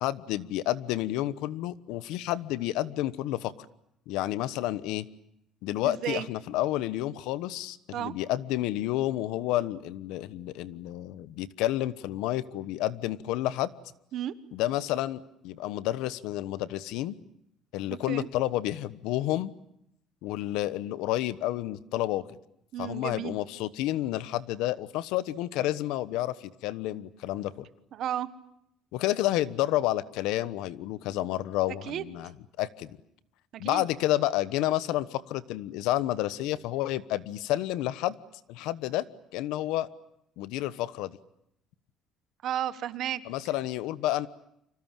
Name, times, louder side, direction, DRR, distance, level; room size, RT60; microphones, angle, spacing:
voice 1, 0.0-3.7 4.1-5.1 5.6-13.7 14.5-17.1 17.7-19.5 20.2-22.4 22.8-27.7 28.9-32.3 32.6-33.0 33.6-38.1 38.5-39.0 39.3-39.9 40.4-41.1 43.3-44.3, left 14 dB, 90° left, 16 dB, 1.1 m, -30 dB
voice 2, 5.8-6.3 7.9-8.1 14.1-14.3 18.1-18.3 22.7-23.4 27.9-28.3 31.9-32.0 33.5-33.9 42.4-43.2, right 11 dB, 50° right, 14 dB, 1.3 m, -33 dB
29.5 x 26.0 x 7.5 m, 0.76 s
cardioid pair, 165°, 0 cm